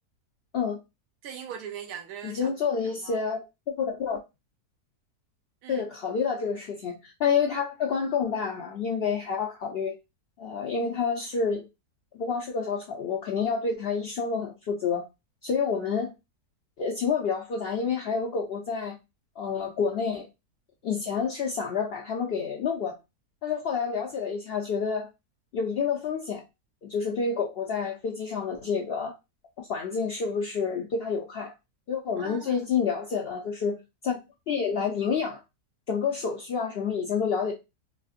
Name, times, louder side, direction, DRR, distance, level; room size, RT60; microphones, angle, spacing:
voice 1, 1.2-3.2 5.6-5.9 32.1-32.6, right 8 dB, 80° right, 1.1 m, -41 dB
voice 2, 2.2-3.5 3.8-4.2 5.7-9.9 10.4-11.6 12.1-15.0 15.4-16.1 16.8-18.9 19.4-20.3 20.8-23.0 23.4-25.1 25.5-26.4 26.8-29.1 29.7-31.5 31.9-33.7 34.0-34.2 34.5-35.4 35.9-37.5, left 6 dB, 80° left, 0.5 m, -28 dB
3.3 x 2.5 x 2.4 m
omnidirectional pair, 1.6 m